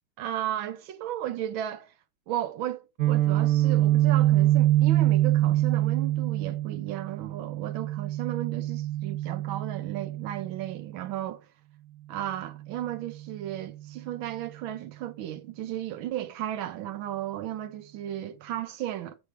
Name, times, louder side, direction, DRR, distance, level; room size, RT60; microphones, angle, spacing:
voice 1, 0.2-1.9 2.3-11.5 12.1-19.2, right 12 dB, 85° right, 1.6 m, -34 dB
Guitar, 3.0-10.8, right 14 dB, 65° right, 0.8 m, -25 dB
8.0 x 3.4 x 5.9 m
omnidirectional pair, 2.1 m